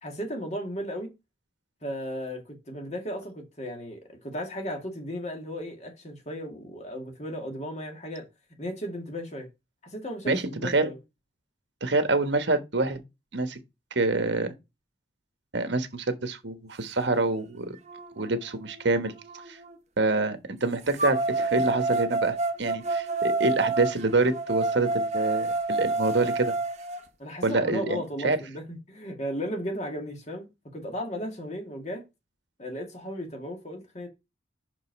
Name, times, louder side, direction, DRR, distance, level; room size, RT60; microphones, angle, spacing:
voice 1, 0.0-1.1 1.8-8.3 8.6-9.5 9.8-11.0 27.2-30.5 30.7-32.1 32.6-34.1, equal, 35° left, 2.1 m, -35 dB
voice 2, 10.3-10.9 11.8-13.0 13.3-13.6 13.9-14.5 15.5-17.8 18.2-19.1 19.5-19.6 20.0-26.5 27.4-28.4, right 2 dB, 70° right, 1.3 m, -26 dB
sound 1, 17.2-17.3 17.8-19.7 21.0-27.0, right 3 dB, 35° right, 1.0 m, -29 dB
5.8 x 5.3 x 5.2 m
head